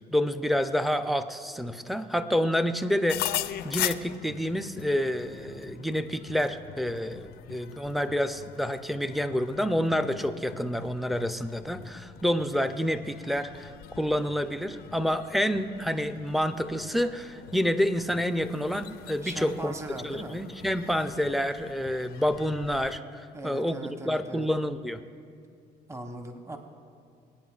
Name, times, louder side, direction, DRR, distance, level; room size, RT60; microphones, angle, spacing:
voice 1, 0.1-3.3 3.6-13.7 14.0-19.7 20.0-23.8 24.1-25.0, equal, ahead, 9 dB, 0.5 m, -28 dB
sound 1, 3.1-23.0, left 13 dB, 70° left, 0.4 m, -41 dB
voice 2, 19.2-20.4 23.3-24.5 25.9-26.6, right 1 dB, 15° right, 5 dB, 0.9 m, -39 dB
22.5 x 8.9 x 2.4 m, 2.4 s
cardioid pair, 110°, 17 cm